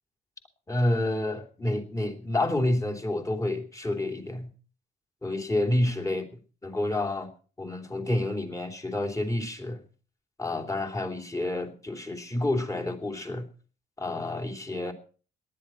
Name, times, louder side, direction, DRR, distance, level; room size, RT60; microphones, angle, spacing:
voice 1, 0.7-4.5 5.2-6.3 6.6-7.3 7.6-9.8 10.4-13.5 14.0-14.9, left 1 dB, 15° left, 4 dB, 3.0 m, -29 dB
18.5 x 11.0 x 4.3 m, 0.40 s
cardioid pair, 90°, 20 cm